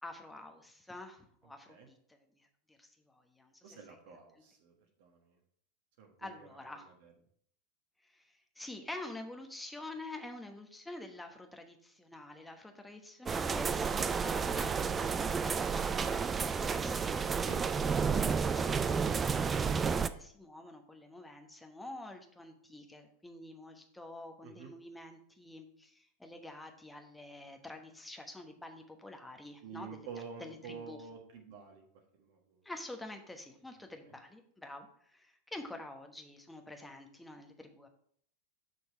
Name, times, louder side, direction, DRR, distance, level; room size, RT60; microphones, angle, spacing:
voice 1, 0.0-4.0 4.3-4.4 6.2-6.9 8.0-17.5 18.4-30.1 30.4-31.0 32.6-37.9, left 2 dB, 5° left, 4 dB, 1.1 m, -48 dB
voice 2, 3.6-4.7 5.0-5.3 6.0-7.1 14.0-14.1 17.5-17.6 24.4-24.7 29.6-31.9 32.1-32.6, right 6 dB, 55° right, 1 dB, 1.4 m, -49 dB
sound 1, 13.3-20.1, right 5 dB, 20° right, 0.4 m, -31 dB
6.2 x 5.5 x 4.4 m, 0.62 s
figure-of-eight pair, 90°, 0 cm